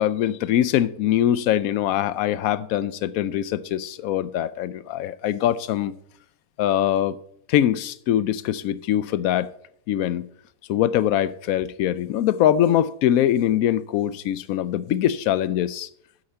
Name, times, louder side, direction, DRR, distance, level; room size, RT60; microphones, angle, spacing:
voice 1, 0.0-5.9 6.6-7.1 7.5-9.5 9.9-10.3 10.7-15.9, left 11 dB, 70° left, 0.9 m, -22 dB
8.2 x 7.9 x 5.6 m
omnidirectional pair, 1.7 m